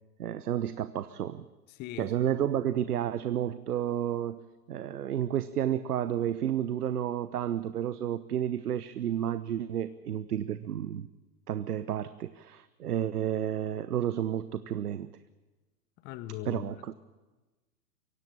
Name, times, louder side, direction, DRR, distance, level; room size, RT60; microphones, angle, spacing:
voice 1, 0.2-1.4 2.0-4.4 4.7-11.1 11.5-15.1 16.4-16.9, right 10 dB, 65° right, 14 dB, 1.0 m, -31 dB
voice 2, 1.7-2.1 16.0-16.6, left 14 dB, 20° left, 13 dB, 0.7 m, -39 dB
23.5 x 17.0 x 8.9 m, 1.2 s
figure-of-eight pair, 115°, 49 cm